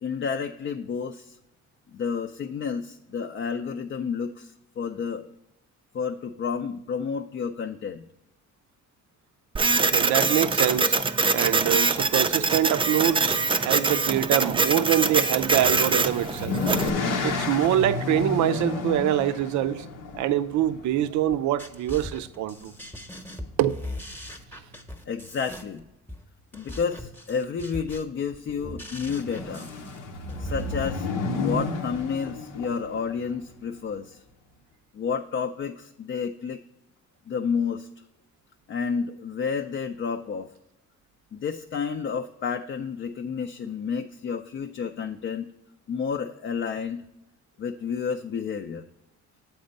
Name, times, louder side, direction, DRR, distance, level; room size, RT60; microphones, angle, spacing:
voice 1, 0.0-1.4 1.9-5.4 5.9-8.0 25.1-25.8 26.5-29.7 30.4-31.1 31.3-34.2 34.9-36.6 37.3-37.9 38.7-40.5 41.3-45.5 45.9-47.0 47.6-48.8, left 6 dB, 40° left, 0.4 m, -30 dB
Printer, 9.6-16.9, right 4 dB, 20° right, 0.4 m, -24 dB
voice 2, 9.8-11.0 11.3-16.6 17.2-19.9 20.2-22.7 23.6-23.8, right 12 dB, 70° right, 0.5 m, -25 dB
sound 1, 15.4-21.5 22.6-23.0 23.3-23.4 23.7-23.8 28.9-33.3, left 3 dB, 90° left, 0.9 m, -31 dB
sound 2, 21.3-30.9, equal, 5° left, 0.9 m, -39 dB
7.9 x 4.3 x 5.2 m
cardioid pair, 90°, 30 cm